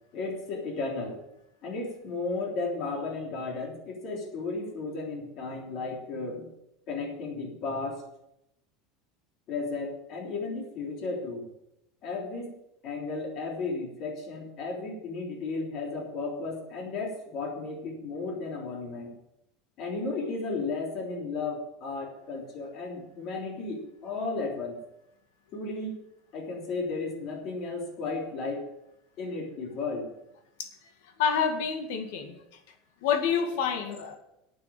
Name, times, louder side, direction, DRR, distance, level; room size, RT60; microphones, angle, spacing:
voice 1, 0.1-1.2 1.6-6.5 6.9-8.0 9.5-11.5 12.0-12.5 12.8-19.1 19.8-24.8 25.5-26.0 26.3-28.7 29.2-30.1, left 3 dB, 40° left, 1 dB, 3.4 m, -34 dB
voice 2, 31.2-32.4 33.0-34.2, left 7 dB, 75° left, 5 dB, 2.1 m, -28 dB
9.1 x 7.7 x 8.9 m, 0.83 s
supercardioid pair, 160°, 0 cm